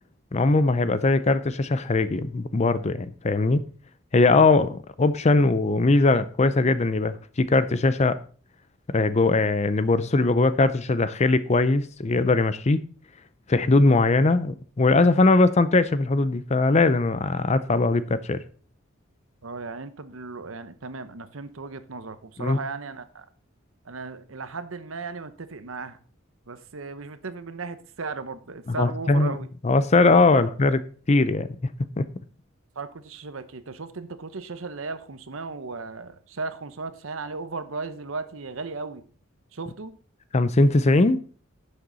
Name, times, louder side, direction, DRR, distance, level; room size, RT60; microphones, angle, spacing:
voice 1, 0.3-3.6 4.1-8.2 8.9-12.8 13.5-18.4 22.4-22.6 28.8-29.3 29.6-30.8 31.1-31.5 32.0-32.1 40.3-41.2, left 3 dB, 35° left, 0.5 m, -20 dB
voice 2, 19.4-23.2 23.8-26.0 26.5-29.5 30.1-30.4 32.7-39.0 39.5-40.0, right 4 dB, 80° right, 0.9 m, -36 dB
11.0 x 6.6 x 4.0 m
head